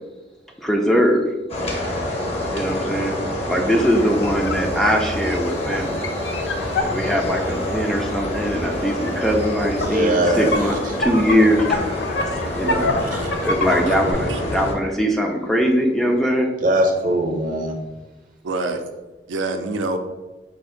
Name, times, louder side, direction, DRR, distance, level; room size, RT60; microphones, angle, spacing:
voice 1, 0.6-1.3 2.5-3.2 3.5-6.1 6.8-11.6 12.5-12.9 13.4-16.5, equal, ahead, 0 dB, 0.4 m, -21 dB
sound 1, 1.5-14.7, left 1 dB, 35° left, 0.8 m, -27 dB
sound 2, 3.7-8.0 9.0-9.1 9.4-14.1, left 2 dB, 65° left, 0.5 m, -28 dB
voice 2, 9.8-10.6 13.0-13.1 16.6-17.7, right 1 dB, 45° right, 3 dB, 0.7 m, -21 dB
voice 3, 12.6-13.1 13.8-14.4 18.4-18.9 19.3-20.0, right 2 dB, 85° right, 6 dB, 0.5 m, -27 dB
5.2 x 2.5 x 3.7 m, 1.2 s
head